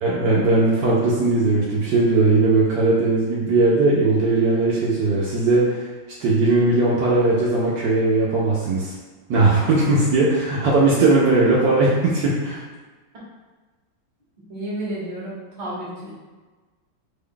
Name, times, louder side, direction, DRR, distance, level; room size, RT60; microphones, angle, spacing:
voice 1, 0.0-5.9 6.2-8.9 9.3-12.6, right 3 dB, 70° right, -5 dB, 1.1 m, -18 dB
voice 2, 14.5-16.1, right 1 dB, 30° right, -8 dB, 0.8 m, -31 dB
3.3 x 2.2 x 3.6 m, 1.3 s
omnidirectional pair, 2.1 m